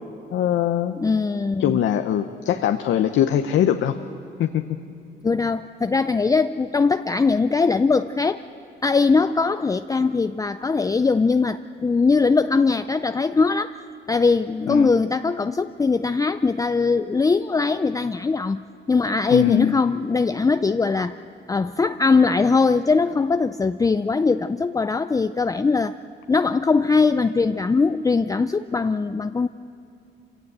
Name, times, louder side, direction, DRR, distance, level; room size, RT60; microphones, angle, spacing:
voice 1, 0.3-1.0 1.6-3.9 4.4-4.6 14.7-14.9 19.3-19.8, left 10 dB, 75° left, 7 dB, 0.8 m, -21 dB
voice 2, 1.0-1.8 5.2-8.4 8.8-13.8 14.1-18.6 18.9-21.2 21.5-26.0 26.3-29.5, left 4 dB, 15° left, 10 dB, 0.4 m, -21 dB
26.5 x 17.0 x 8.0 m, 2.7 s
cardioid pair, 90°, 20 cm